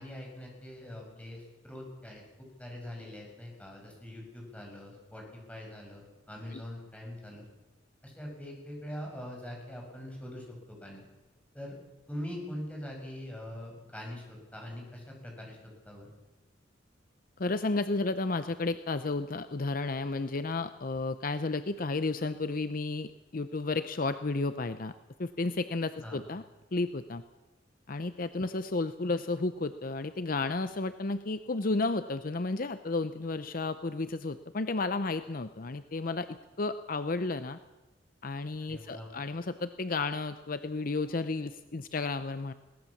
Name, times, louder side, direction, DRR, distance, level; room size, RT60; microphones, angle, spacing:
voice 1, 0.0-7.5 8.0-11.1 11.5-11.8 12.1-15.6 15.8-16.1 26.0-26.2 38.7-39.1, left 1 dB, 5° left, 0 dB, 6.3 m, -43 dB
voice 2, 17.4-24.9 25.2-26.4 26.7-27.2 27.9-37.6 38.2-42.5, left 3 dB, 50° left, 11 dB, 0.7 m, -32 dB
21.5 x 18.0 x 7.2 m, 1.1 s
head